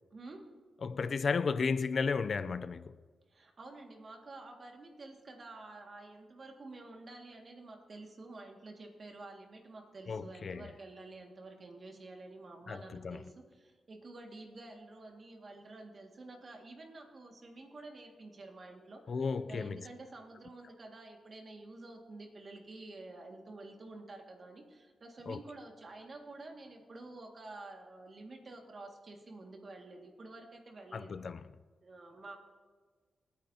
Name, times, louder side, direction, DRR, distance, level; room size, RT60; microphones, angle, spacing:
voice 1, 0.1-0.4 3.3-31.2 31.8-32.4, right 2 dB, 45° right, 2.0 m, -50 dB
voice 2, 0.8-2.9 10.1-10.7 12.7-13.2 19.1-19.8 25.3-25.4 30.9-31.4, left 5 dB, 55° left, 0.5 m, -34 dB
27.5 x 9.5 x 2.8 m
cardioid pair, 95°, 0 cm